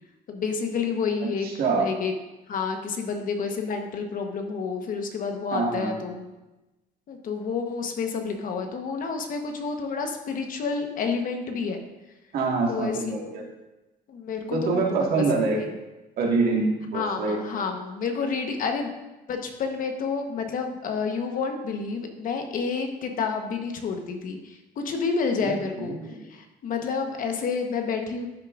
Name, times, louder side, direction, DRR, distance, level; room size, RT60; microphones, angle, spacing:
voice 1, 0.3-1.5 1.8-2.1 2.5-6.3 7.1-11.8 12.7-13.4 14.1-15.2 15.6-15.7 16.9-18.9 19.3-25.9 26.3-28.3, left 5 dB, 55° left, 5 dB, 1.1 m, -29 dB
voice 2, 1.2-1.9 5.5-5.9 12.3-13.4 14.5-15.6 16.2-17.4 25.4-26.3, right 4 dB, 65° right, 0 dB, 1.8 m, -25 dB
12.0 x 6.8 x 2.5 m, 1.0 s
cardioid pair, 110°, 17 cm